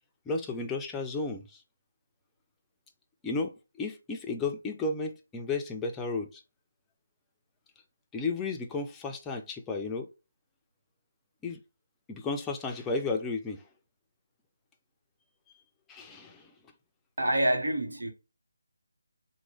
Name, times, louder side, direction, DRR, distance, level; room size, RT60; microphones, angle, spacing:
voice 1, 0.3-1.6 3.2-6.4 8.1-10.1 11.4-11.6 12.1-13.6 15.9-16.5, left 3 dB, 10° left, 0.4 m, -33 dB
voice 2, 17.2-18.1, right 1 dB, 85° right, 1.1 m, -27 dB
3.0 x 2.2 x 3.0 m
figure-of-eight pair, 160°, 0 cm